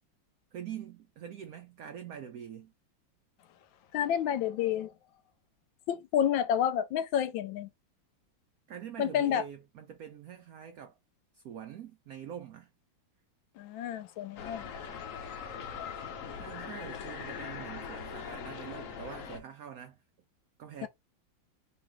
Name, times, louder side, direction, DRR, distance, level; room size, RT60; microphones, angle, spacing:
voice 1, 0.5-2.7 8.7-11.0 11.3-12.7 16.4-20.0 20.6-20.9, right 9 dB, 85° right, 0.7 m, -44 dB
voice 2, 3.9-4.9 5.9-7.7 9.0-9.4 13.6-14.7 20.8-20.9, left 9 dB, 80° left, 1.3 m, -29 dB
sound 1, 14.4-19.4, left 7 dB, 65° left, 0.8 m, -41 dB
3.3 x 3.0 x 3.4 m
omnidirectional pair, 2.2 m